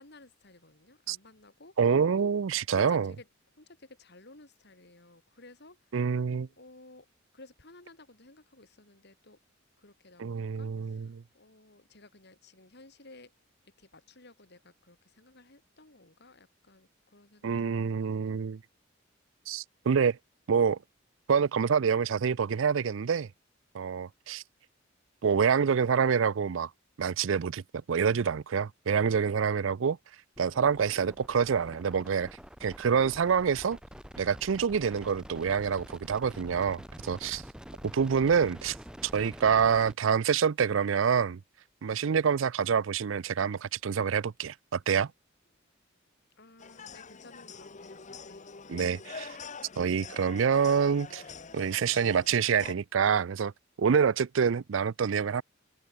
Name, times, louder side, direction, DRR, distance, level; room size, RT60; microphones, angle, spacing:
voice 1, 0.0-2.3 2.7-3.3 3.5-6.1 6.6-7.1 7.3-9.4 9.8-13.3 13.6-18.4 46.4-48.5, left 2 dB, 55° left, 4.1 m, -55 dB
voice 2, 1.8-3.1 5.9-6.5 10.2-11.2 17.4-18.6 19.5-20.2 20.5-20.8 21.3-23.3 23.7-24.4 25.2-26.7 27.0-27.6 27.9-30.0 30.4-32.3 32.6-33.8 34.2-37.4 37.8-38.8 39.0-41.4 41.8-45.1 48.7-49.4 49.8-51.2 51.5-53.5 53.8-55.4, right 6 dB, 75° right, 0.4 m, -26 dB
sound 1, 30.3-39.9, equal, 5° right, 2.7 m, -47 dB
sound 2, 46.6-52.7, left 5 dB, 40° left, 1.0 m, -45 dB
head